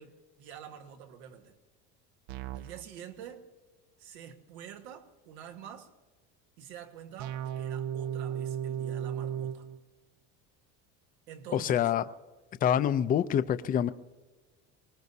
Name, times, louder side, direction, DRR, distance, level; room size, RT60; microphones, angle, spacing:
voice 1, 0.0-1.5 2.5-3.5 4.0-5.9 6.6-9.7 11.3-11.9, right 8 dB, 85° right, 1.5 m, -47 dB
sound 1, 2.3-2.9 7.2-9.8, right 9 dB, 60° right, 0.6 m, -35 dB
voice 2, 11.5-12.0 12.6-13.9, left 9 dB, 25° left, 0.5 m, -26 dB
24.0 x 19.5 x 2.7 m
cardioid pair, 135°, 32 cm